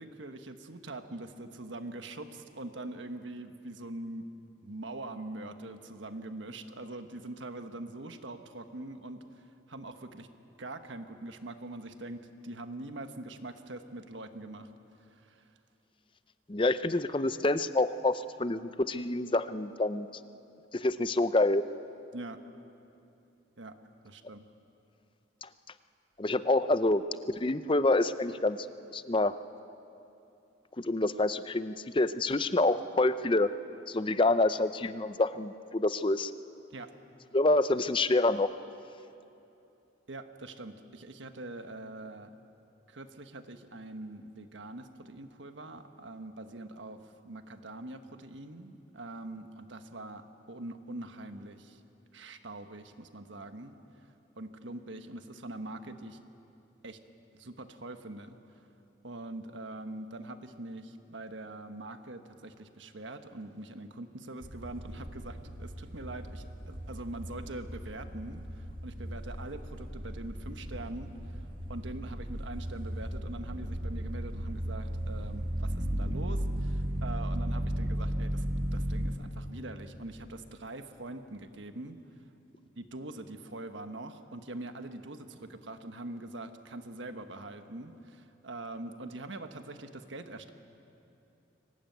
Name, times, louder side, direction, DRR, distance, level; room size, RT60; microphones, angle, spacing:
voice 1, 0.0-4.3 4.6-10.3 10.6-14.7 15.1-15.4 22.1-22.4 23.6-23.7 24.0-24.4 36.7-36.9 40.1-42.4 42.9-51.8 52.1-53.7 54.4-56.2 56.8-57.0 57.3-58.3 59.0-82.0 82.7-90.5, right 2 dB, 80° right, 8 dB, 1.3 m, -43 dB
voice 2, 16.5-20.1 20.7-21.6 25.4-25.5 26.2-27.0 27.4-28.7 28.9-29.3 30.8-33.5 33.9-36.3 37.3-38.5, left 2 dB, 25° left, 13 dB, 0.6 m, -27 dB
sound 1, 64.4-79.1, equal, 50° right, 1.8 m, -35 dB
23.5 x 18.5 x 9.3 m, 2.8 s
head